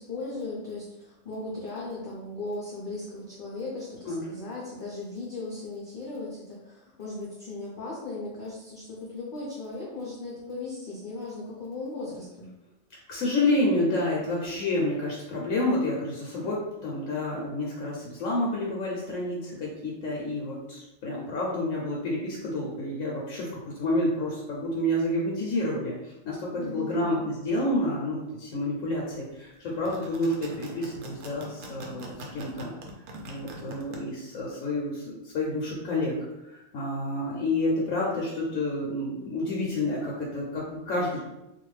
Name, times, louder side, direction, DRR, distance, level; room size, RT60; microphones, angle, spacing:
voice 1, 0.0-12.5 26.6-27.3, left 2 dB, 55° left, -5 dB, 0.6 m, -37 dB
voice 2, 13.1-32.7 33.3-36.1 36.4-41.2, left 1 dB, 85° left, -4 dB, 1.0 m, -29 dB
sound 1, 29.7-34.0, right 1 dB, 80° right, 1.0 m, -42 dB
2.5 x 2.3 x 3.1 m, 0.96 s
omnidirectional pair, 1.3 m